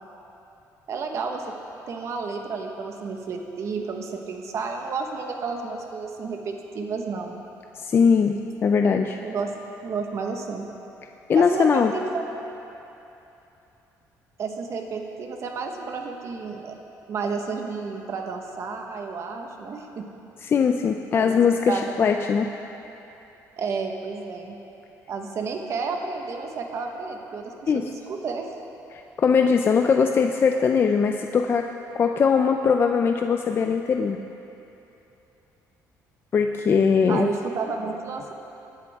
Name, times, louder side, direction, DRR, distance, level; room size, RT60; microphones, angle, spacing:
voice 1, 0.9-1.5 1.9-7.4 9.2-9.5 9.8-10.7 11.3-12.2 14.4-16.8 17.1-20.0 21.1-21.4 21.6-21.8 23.6-24.5 25.1-28.5 37.1-38.3, right 4 dB, 50° right, 3 dB, 1.3 m, -31 dB
voice 2, 7.8-9.2 11.3-11.9 20.4-22.5 27.7-27.9 28.9-31.7 32.0-34.2 36.3-37.3, left 6 dB, 35° left, 5 dB, 0.4 m, -21 dB
17.5 x 11.0 x 3.6 m, 2.9 s
cardioid pair, 135°, 7 cm